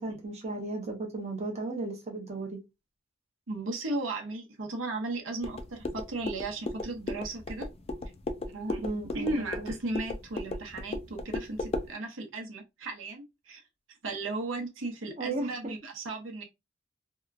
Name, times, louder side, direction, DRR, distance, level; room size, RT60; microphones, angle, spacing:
voice 1, 0.0-2.6 8.8-9.7 15.2-15.5, right 2 dB, 35° right, 0.6 m, -35 dB
voice 2, 3.5-7.7 8.5-8.8 9.1-13.6 14.0-16.4, right 2 dB, 85° right, 0.8 m, -35 dB
sound 1, 5.4-11.9, left 2 dB, 30° left, 0.3 m, -36 dB
2.8 x 2.3 x 2.3 m
head